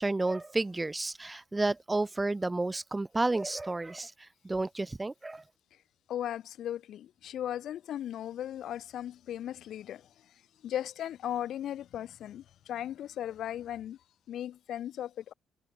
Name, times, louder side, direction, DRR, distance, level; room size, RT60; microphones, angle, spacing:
voice 1, 0.0-4.1 4.4-5.4, right 2 dB, 15° right, 0.6 m, -31 dB
voice 2, 6.1-10.1 10.6-14.0 14.3-15.3, left 11 dB, 70° left, 1.7 m, -37 dB
cardioid pair, 90°, 0 cm